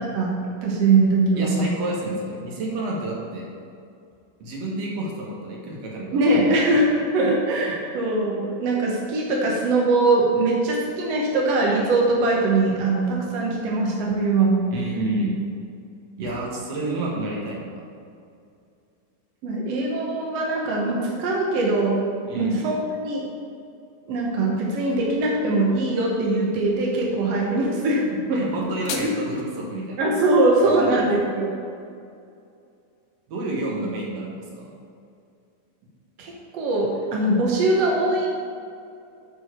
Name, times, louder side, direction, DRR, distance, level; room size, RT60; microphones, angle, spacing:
voice 1, 0.6-1.6 6.1-14.6 19.4-22.0 22.3-22.7 23.0-23.3 24.1-28.0 28.3-29.1 30.0-31.6 36.2-38.3, right 2 dB, 85° right, -2 dB, 1.4 m, -22 dB
voice 2, 1.4-3.5 4.4-6.5 14.7-15.3 16.2-17.8 22.3-22.6 28.3-30.0 30.6-31.0 33.3-34.7, right 1 dB, 60° right, -3 dB, 1.9 m, -29 dB
sound 1, 28.4-29.4, left 7 dB, 75° left, 2.1 m, -35 dB
11.5 x 4.7 x 4.5 m, 2.4 s
omnidirectional pair, 4.6 m